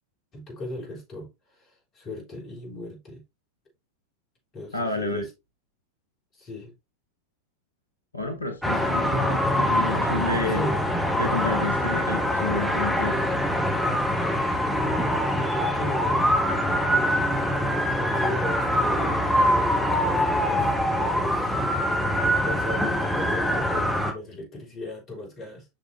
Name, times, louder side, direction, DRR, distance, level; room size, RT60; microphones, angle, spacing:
voice 1, 0.3-1.3 1.6-3.2 4.5-5.3 6.3-6.7 8.7-8.9 10.5-10.8 15.4-16.4 18.0-21.5 22.4-25.7, left 1 dB, 30° left, 3.7 m, -36 dB
voice 2, 4.7-5.2 8.1-10.6 11.2-13.3, left 3 dB, 80° left, 1.0 m, -30 dB
sound 1, 8.6-24.1, equal, ahead, 1.7 m, -24 dB
7.3 x 6.0 x 2.6 m
figure-of-eight pair, 90°, 0 cm